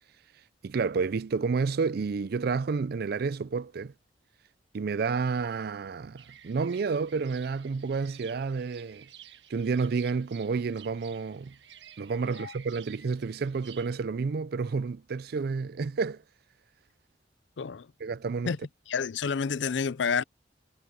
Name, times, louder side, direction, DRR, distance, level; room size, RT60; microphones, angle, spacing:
voice 1, 0.6-3.9 4.7-9.1 9.5-11.5 12.0-16.2 18.0-18.5, right 4 dB, 60° right, 0.4 m, -30 dB
sound 1, 6.2-14.0, right 10 dB, 80° right, 1.4 m, -53 dB
voice 2, 17.6-17.9 18.5-18.6 18.9-20.2, left 6 dB, 85° left, 0.5 m, -29 dB
head